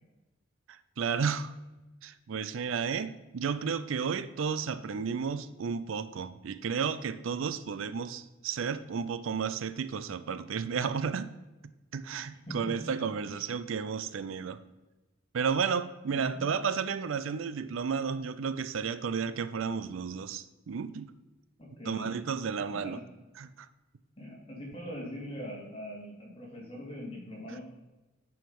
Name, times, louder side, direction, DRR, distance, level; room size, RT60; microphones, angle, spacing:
voice 1, 0.7-1.5 2.0-11.3 11.9-14.6 15.3-21.1 21.9-23.0 23.4-23.7, right 6 dB, 80° right, 14 dB, 0.4 m, -32 dB
voice 2, 16.1-16.5 21.6-22.3 22.6-23.0 24.2-27.6, equal, 30° left, -4 dB, 2.7 m, -42 dB
9.0 x 4.9 x 5.3 m, 1.1 s
head